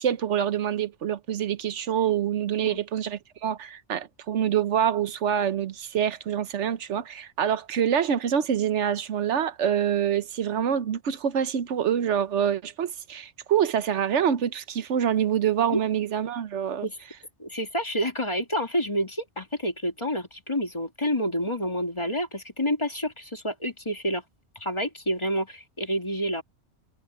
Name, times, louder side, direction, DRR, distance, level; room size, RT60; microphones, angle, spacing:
voice 1, 0.0-16.8, right 9 dB, 80° right, 1.1 m, -26 dB
voice 2, 17.4-24.2 24.6-26.4, equal, 25° left, 2.4 m, -28 dB
omnidirectional pair, 1.2 m